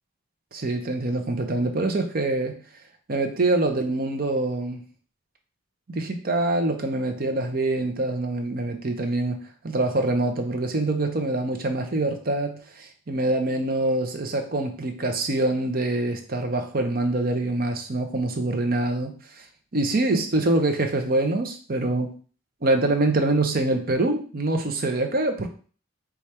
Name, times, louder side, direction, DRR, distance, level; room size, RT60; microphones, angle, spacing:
voice 1, 0.5-2.5 3.1-4.8 5.9-19.4 19.7-22.1 22.6-25.5, right 2 dB, 45° right, 5 dB, 0.6 m, -25 dB
4.9 x 2.4 x 4.3 m, 0.40 s
head